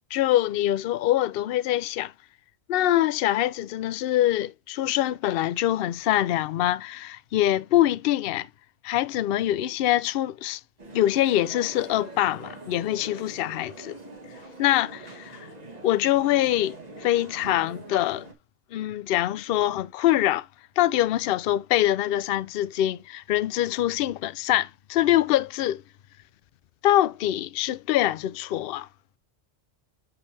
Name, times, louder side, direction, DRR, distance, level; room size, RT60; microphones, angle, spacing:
voice 1, 0.1-2.1 2.7-8.5 8.8-10.6 10.9-14.0 14.6-15.5 15.8-18.3 18.7-20.5 20.8-25.8 26.8-28.9, left 13 dB, 60° left, 0.6 m, -24 dB
sound 1, 10.8-18.3, right 2 dB, 35° right, 1.4 m, -43 dB
8.0 x 5.3 x 3.3 m
omnidirectional pair, 1.2 m